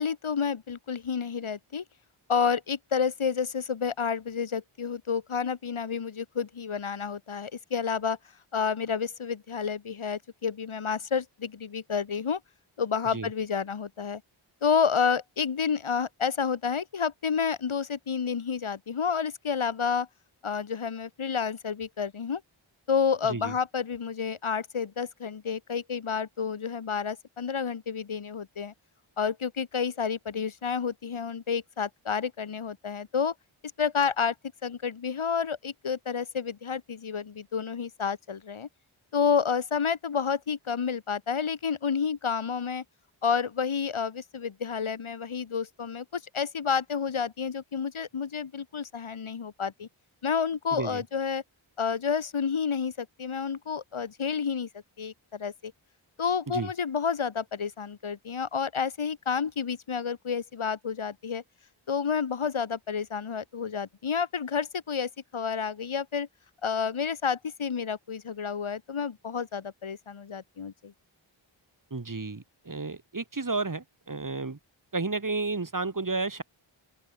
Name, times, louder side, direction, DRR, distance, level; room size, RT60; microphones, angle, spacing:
voice 1, 0.0-1.8 2.3-8.2 8.5-12.4 12.8-14.2 14.6-20.1 20.4-22.4 22.9-28.7 29.2-33.3 33.8-34.3 34.6-38.7 39.1-42.8 43.2-49.9 50.2-51.4 51.8-54.7 55.0-55.7 56.2-61.4 61.9-66.3 66.6-70.9, left 6 dB, 70° left, 2.4 m, -30 dB
voice 2, 50.7-51.0 56.5-56.7 71.9-74.6 74.9-76.4, right 3 dB, 40° right, 3.1 m, -32 dB
open air
cardioid pair, 45°, 50 cm